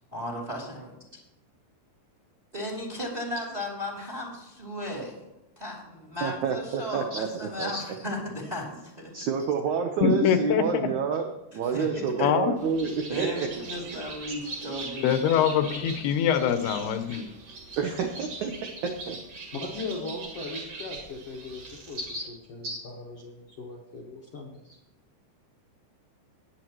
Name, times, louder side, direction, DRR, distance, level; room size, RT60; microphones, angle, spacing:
voice 1, 0.1-1.2 2.5-5.2 5.6-9.3 11.5-12.3 13.1-15.8, left 1 dB, 15° right, -1 dB, 2.0 m, -36 dB
voice 2, 6.2-7.3 7.6-7.8 9.1-11.3 11.5-13.5 17.8-18.5 18.8-19.2 22.1-22.2 22.6-22.8, right 6 dB, 85° right, 4 dB, 1.6 m, -28 dB
voice 3, 10.0-10.9 12.2-12.5 15.0-17.3, left 8 dB, 80° left, 8 dB, 2.7 m, -24 dB
Bird, 12.6-22.3, right 3 dB, 50° right, 2.5 m, -41 dB
voice 4, 19.5-22.0 22.3-24.8, left 3 dB, 60° left, -2 dB, 1.6 m, -39 dB
19.0 x 8.2 x 3.0 m, 0.92 s
omnidirectional pair, 4.7 m